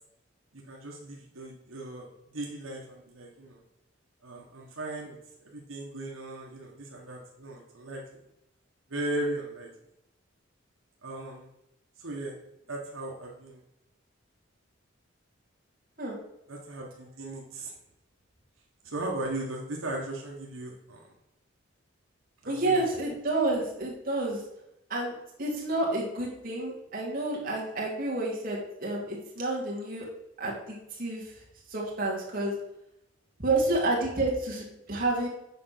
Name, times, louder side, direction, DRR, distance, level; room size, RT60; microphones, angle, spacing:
voice 1, 0.5-2.1 2.3-3.6 4.2-8.2 8.9-9.7 11.0-11.5 12.0-12.4 12.7-13.6 16.5-17.7 18.8-21.1 22.4-22.8, right 2 dB, 85° right, -1 dB, 1.4 m, -37 dB
voice 2, 22.5-24.4 24.9-25.1 25.4-30.0 30.4-31.3 31.7-32.5 33.4-35.3, right 2 dB, 45° right, -4 dB, 2.3 m, -29 dB
7.7 x 5.2 x 5.9 m, 0.85 s
head